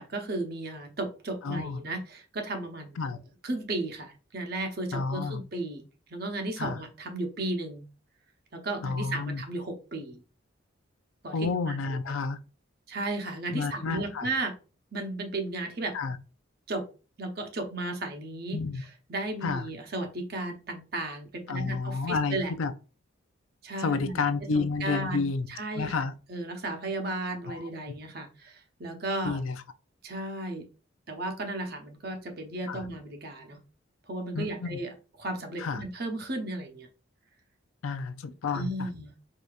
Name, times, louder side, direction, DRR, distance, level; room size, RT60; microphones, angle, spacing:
voice 1, 0.0-3.0 3.4-5.8 6.1-7.9 8.5-10.2 11.2-12.0 12.9-14.5 14.9-15.9 16.7-16.8 17.2-18.6 19.1-22.5 23.6-24.2 24.5-25.9 26.3-29.4 30.0-30.7 31.1-33.6 34.1-34.9 35.2-36.9 38.5-39.1, right 2 dB, 50° right, 0.8 m, -34 dB
voice 2, 1.4-1.8 3.0-3.2 4.9-5.4 6.6-6.8 8.8-9.4 11.3-12.4 13.5-14.3 15.9-16.2 18.5-18.8 19.4-19.7 21.5-22.7 23.8-25.5 25.7-26.1 27.5-27.6 29.2-29.6 32.7-32.8 34.3-34.8 35.6-35.8 37.8-38.9, left 4 dB, 85° left, 0.4 m, -30 dB
4.8 x 2.7 x 2.4 m
head